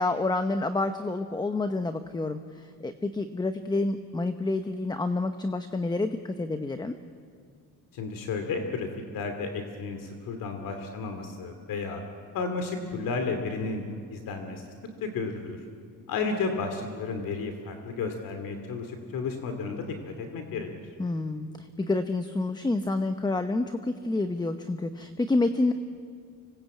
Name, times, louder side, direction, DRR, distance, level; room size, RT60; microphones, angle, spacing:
voice 1, 0.0-7.0 21.0-25.7, left 2 dB, 10° left, 9 dB, 0.9 m, -28 dB
voice 2, 7.9-12.0 12.3-13.8 14.1-14.6 15.0-15.6 16.1-20.7, left 4 dB, 75° left, 6 dB, 2.6 m, -32 dB
25.5 x 19.0 x 8.4 m, 2.2 s
cardioid pair, 115°, 34 cm